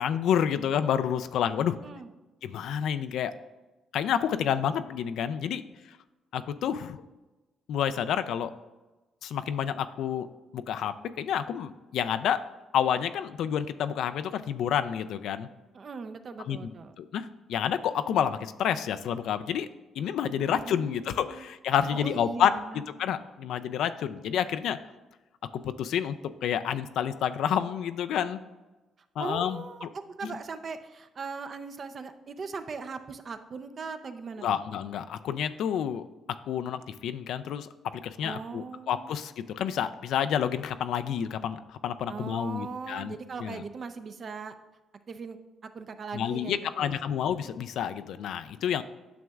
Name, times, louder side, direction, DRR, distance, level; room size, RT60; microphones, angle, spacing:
voice 1, 0.0-1.8 2.4-3.3 3.9-5.6 6.3-7.0 7.7-8.5 9.2-10.3 10.5-12.4 12.7-15.5 16.5-16.6 17.0-19.7 20.0-22.5 23.0-24.8 25.5-28.4 29.2-29.6 34.4-36.0 36.5-43.6 46.1-48.8, left 9 dB, 80° left, 11 dB, 0.3 m, -29 dB
voice 2, 15.7-16.9 20.5-21.5 21.9-22.8 29.2-34.6 38.2-39.1 42.1-44.5 45.1-45.4 45.6-47.2, right 5 dB, 45° right, 9 dB, 0.5 m, -39 dB
9.3 x 6.2 x 2.3 m, 1.1 s
cardioid pair, 90°, 0 cm